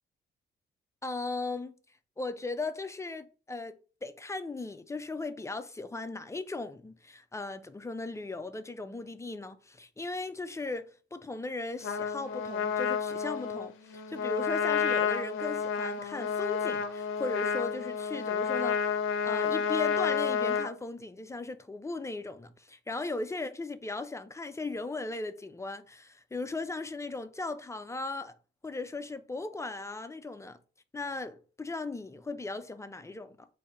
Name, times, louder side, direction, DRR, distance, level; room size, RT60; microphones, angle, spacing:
voice 1, 1.0-1.7 2.2-18.8 19.2-28.3 28.6-30.6 30.9-33.5, left 3 dB, 15° left, 0.4 m, -37 dB
Trumpet, 11.8-20.7, left 6 dB, 85° left, 0.6 m, -30 dB
3.5 x 2.7 x 4.4 m
cardioid pair, 90°, 20 cm